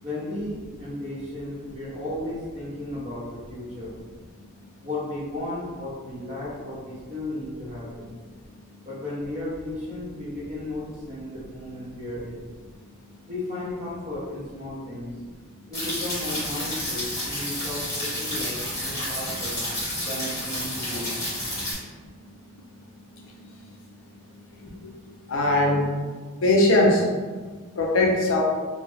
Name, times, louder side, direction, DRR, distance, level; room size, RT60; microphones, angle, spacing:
voice 1, 0.0-4.0 4.8-8.1 8.8-12.5 13.2-15.1 15.7-19.6 20.0-21.1, left 1 dB, 30° right, -8 dB, 0.9 m, -34 dB
sound 1, 15.7-21.7, left 1 dB, 15° left, 1.1 m, -30 dB
voice 2, 24.5-24.9 25.3-25.9 26.4-27.1 27.7-28.4, left 1 dB, 70° left, -1 dB, 0.5 m, -21 dB
2.7 x 2.2 x 3.0 m, 1.4 s
head